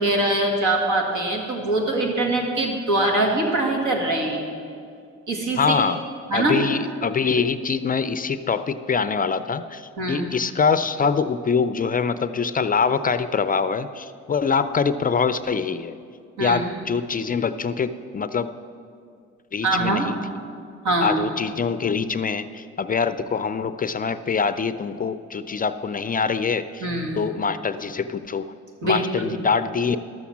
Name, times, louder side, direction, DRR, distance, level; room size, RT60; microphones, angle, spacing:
voice 1, 0.0-4.4 5.3-5.8 6.3-6.6 10.0-10.3 16.4-16.6 19.6-20.1 20.8-21.2 26.8-27.2 28.8-29.3, right 2 dB, 75° right, 1 dB, 2.1 m, -23 dB
voice 2, 5.6-6.0 6.3-16.0 16.4-18.5 19.5-20.2 21.0-26.9 27.2-28.5 28.8-30.0, left 5 dB, 30° left, 12 dB, 0.4 m, -24 dB
12.5 x 7.0 x 7.2 m, 2.3 s
cardioid pair, 90°, 30 cm